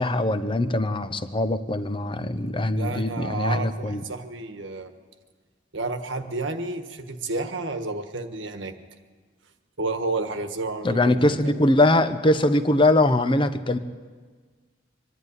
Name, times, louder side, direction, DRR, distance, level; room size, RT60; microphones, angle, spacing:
voice 1, 0.0-4.0 10.8-13.8, left 1 dB, 25° left, 11 dB, 0.9 m, -22 dB
voice 2, 2.8-4.9 5.7-8.7 9.8-11.5, right 2 dB, 65° right, 7 dB, 1.4 m, -31 dB
24.0 x 11.5 x 9.7 m, 1.5 s
head